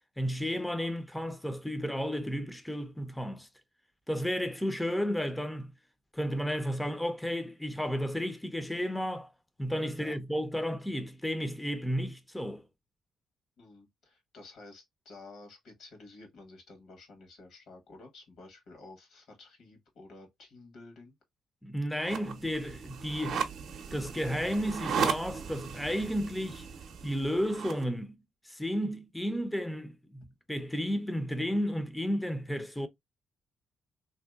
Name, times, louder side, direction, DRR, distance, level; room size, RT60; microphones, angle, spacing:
voice 1, 0.2-3.5 4.1-5.7 6.1-9.3 9.6-12.6 21.6-23.5 23.9-26.7 27.0-28.2 28.4-32.9, equal, 5° left, 0.4 m, -32 dB
voice 2, 13.6-21.2, left 2 dB, 75° left, 1.1 m, -52 dB
sound 1, 22.0-27.8, right 6 dB, 70° right, 0.5 m, -36 dB
3.0 x 2.7 x 2.2 m
cardioid pair, 90°, 0 cm